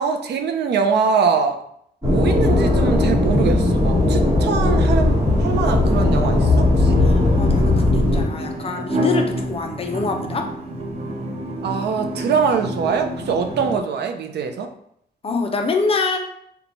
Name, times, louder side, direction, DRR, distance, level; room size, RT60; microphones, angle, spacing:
voice 1, 0.0-1.6 2.0-7.0 11.6-14.7, right 6 dB, 80° right, 7 dB, 0.4 m, -23 dB
sound 1, 2.0-8.2, left 2 dB, 20° right, 1.1 m, -17 dB
sound 2, 2.2-13.8, right 1 dB, 35° right, 0.6 m, -30 dB
voice 2, 7.0-10.5 15.2-16.2, left 3 dB, 35° left, 3 dB, 0.4 m, -25 dB
2.9 x 2.2 x 3.9 m, 0.71 s
wide cardioid pair, 150°, 17 cm